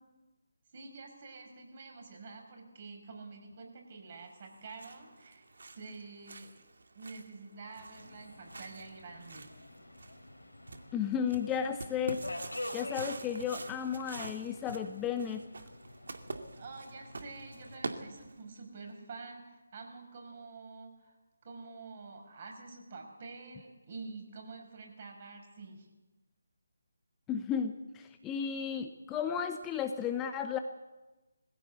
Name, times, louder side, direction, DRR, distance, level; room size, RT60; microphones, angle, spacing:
voice 1, 0.7-6.6 6.9-9.5 16.6-21.2 21.4-25.9, right 4 dB, 40° right, 3 dB, 5.3 m, -48 dB
sound 1, 4.4-18.6, right 3 dB, 65° right, 2.3 m, -46 dB
Subway metro underground, 7.9-17.8, left 1 dB, 85° left, 3.5 m, -48 dB
voice 2, 10.9-12.2 12.7-15.4 27.3-30.6, left 8 dB, 15° left, 7 dB, 0.8 m, -34 dB
21.0 x 16.0 x 8.2 m, 1.1 s
figure-of-eight pair, 155°, 0 cm